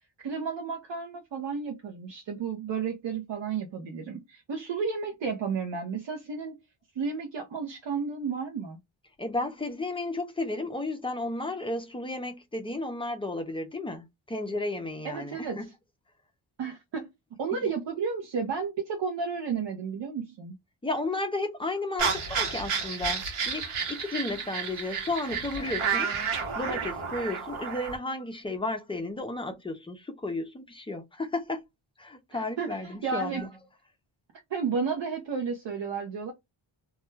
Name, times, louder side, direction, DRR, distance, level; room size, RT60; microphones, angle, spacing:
voice 1, 0.2-6.6 7.0-8.8 15.0-15.6 16.6-17.1 17.4-20.5 32.3-33.4 34.5-36.3, right 5 dB, 65° right, 0.6 m, -32 dB
voice 2, 9.2-15.6 17.6-17.7 20.8-26.1 26.6-31.6 32.0-33.5, left 2 dB, 10° left, 0.4 m, -33 dB
sound 1, 22.0-28.0, right 6 dB, 85° right, 1.0 m, -31 dB
2.3 x 2.1 x 3.0 m
wide cardioid pair, 130°, 49 cm